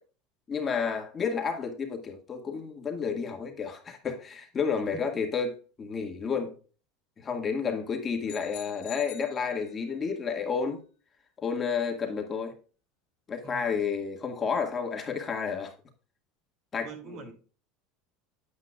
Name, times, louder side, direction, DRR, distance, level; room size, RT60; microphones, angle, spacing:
voice 1, 0.5-6.5 7.2-10.8 11.4-12.5 13.3-15.7 16.7-16.9 17.3-17.4, left 6 dB, 30° left, 1.8 m, -31 dB
sound 1, 8.3-10.1, left 12 dB, 80° left, 2.6 m, -47 dB
voice 2, 13.4-13.7 16.8-17.3, right 5 dB, 55° right, 2.6 m, -44 dB
9.2 x 8.8 x 2.3 m
supercardioid pair, 115°, 0 cm